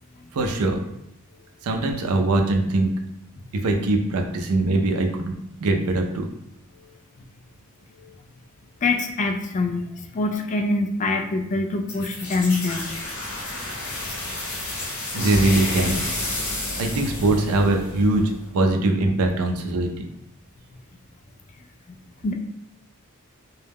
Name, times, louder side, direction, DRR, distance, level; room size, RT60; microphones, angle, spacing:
voice 1, 0.3-0.8 1.6-2.9 3.5-5.3 5.6-6.3 15.1-16.0 16.8-20.1, right 2 dB, 90° right, 4 dB, 0.4 m, -22 dB
voice 2, 8.8-9.8 10.1-12.8 22.2-22.3, left 3 dB, 35° left, 4 dB, 0.3 m, -24 dB
sound 1, 11.9-18.5, left 1 dB, 70° left, 0.8 m, -30 dB
2.2 x 2.0 x 3.3 m, 0.78 s
head